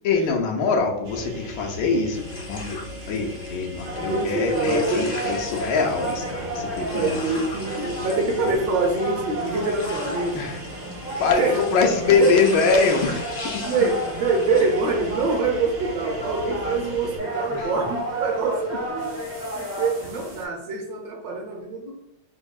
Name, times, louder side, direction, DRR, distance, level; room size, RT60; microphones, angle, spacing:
voice 1, 0.0-2.8 3.1-7.2 8.4-8.5 10.3-10.6 11.2-13.7 17.5-17.8 18.7-18.8, left 4 dB, 80° left, 2 dB, 1.4 m, -23 dB
sound 1, 1.0-17.2, equal, 90° right, 0.6 m, -39 dB
sound 2, 2.1-15.4, left 2 dB, 55° left, 1.0 m, -40 dB
sound 3, 3.8-20.4, right 1 dB, 45° right, 0.7 m, -32 dB
voice 2, 4.0-5.1 6.8-10.4 11.4-11.6 12.2-12.3 13.6-19.1 19.5-21.9, right 3 dB, 70° right, 0 dB, 1.3 m, -25 dB
4.4 x 2.8 x 2.3 m, 0.85 s
omnidirectional pair, 2.3 m